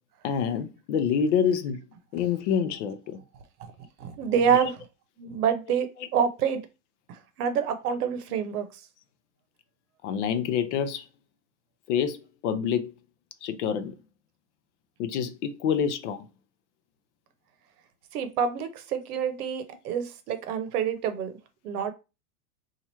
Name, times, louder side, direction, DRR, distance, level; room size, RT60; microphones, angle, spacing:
voice 1, 0.2-1.8 2.1-3.2 4.5-4.7 10.0-11.0 11.9-12.9 13.4-14.0 15.0-16.3 19.4-19.5, left 7 dB, 50° left, 0.5 m, -27 dB
voice 2, 4.0-4.7 5.2-6.6 7.1-8.6 18.1-21.3 21.6-21.9, right 7 dB, 70° right, 0.8 m, -27 dB
2.9 x 2.5 x 4.1 m
supercardioid pair, 150°, 48 cm